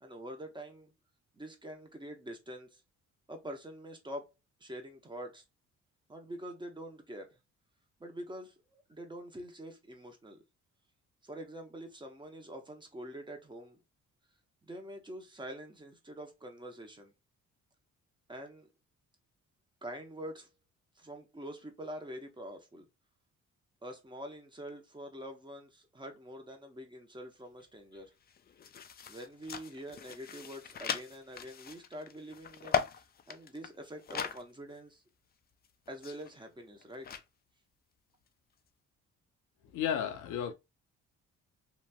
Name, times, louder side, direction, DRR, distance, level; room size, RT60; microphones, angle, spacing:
voice 1, 0.0-0.9 1.3-2.8 3.3-4.3 4.6-5.4 6.1-7.4 8.0-10.4 11.2-13.8 14.7-17.1 18.3-18.7 19.8-20.5 21.0-22.8 23.8-28.1 29.1-32.8 33.3-35.0 35.9-37.2, equal, 15° right, 0.8 m, -45 dB
sound 1, 27.6-27.7 27.9-34.4 34.7-34.8 35.6-37.2, left 8 dB, 35° left, 0.4 m, -39 dB
voice 2, 39.7-40.5, left 9 dB, 85° left, 0.7 m, -33 dB
3.0 x 2.5 x 2.2 m
cardioid pair, 90°, 30 cm